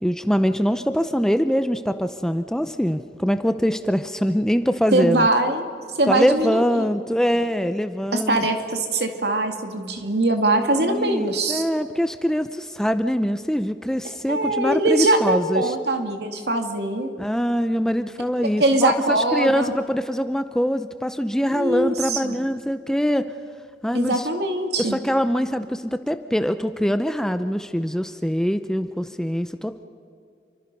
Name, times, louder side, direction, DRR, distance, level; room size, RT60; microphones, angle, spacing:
voice 1, 0.0-5.3 6.1-8.4 10.8-15.7 17.2-23.3 23.8-24.3 24.8-29.8, equal, 5° left, 10 dB, 0.6 m, -23 dB
voice 2, 4.9-6.8 8.1-11.6 14.3-17.1 18.6-19.7 21.4-22.4 23.9-25.0, right 2 dB, 75° right, 5 dB, 2.3 m, -22 dB
28.5 x 24.5 x 5.4 m, 2.4 s
head